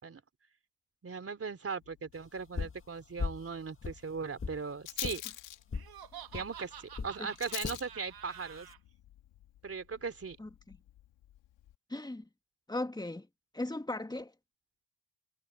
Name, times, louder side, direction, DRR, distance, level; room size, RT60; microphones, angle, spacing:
voice 1, 1.0-5.2 6.3-8.7 9.6-10.4, right 5 dB, 30° right, 3.4 m, -38 dB
Rattle, 1.8-11.8, left 13 dB, 75° left, 2.7 m, -48 dB
sound 1, 2.6-2.8 3.2-3.5 3.8-4.6 5.0-5.2 5.7-5.9 6.3-6.5 7.0-7.2 7.6-7.8 8.4-8.7, left 5 dB, 25° left, 1.7 m, -37 dB
Laughter, 5.7-8.8, right 10 dB, 55° right, 2.0 m, -49 dB
voice 2, 10.4-10.8 11.9-12.3 12.7-13.3 13.5-14.3, left 2 dB, 10° left, 2.3 m, -37 dB
supercardioid pair, 75°, 45 cm